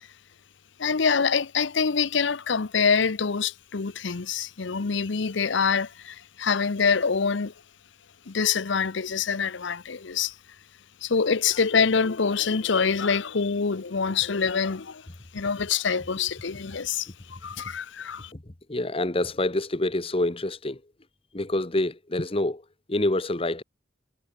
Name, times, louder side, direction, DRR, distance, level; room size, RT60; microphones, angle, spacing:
voice 1, 0.8-7.5 8.3-10.3 11.0-15.0 15.3-18.3, left 5 dB, 60° left, 0.7 m, -25 dB
voice 2, 18.7-20.8 21.3-22.6 22.9-23.6, left 1 dB, 25° left, 1.0 m, -26 dB
head